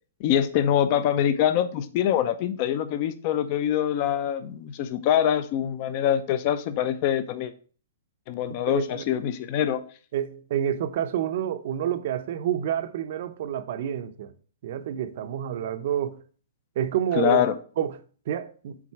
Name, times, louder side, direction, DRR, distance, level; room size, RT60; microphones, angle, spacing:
voice 1, 0.2-7.5 8.3-9.8 17.1-17.5, left 10 dB, 35° left, 0.6 m, -24 dB
voice 2, 8.7-9.0 10.1-14.3 14.6-16.2 16.8-17.5 17.8-18.0 18.3-18.8, right 10 dB, 50° right, 0.6 m, -28 dB
7.2 x 3.8 x 4.7 m
hypercardioid pair, 160°, 0 cm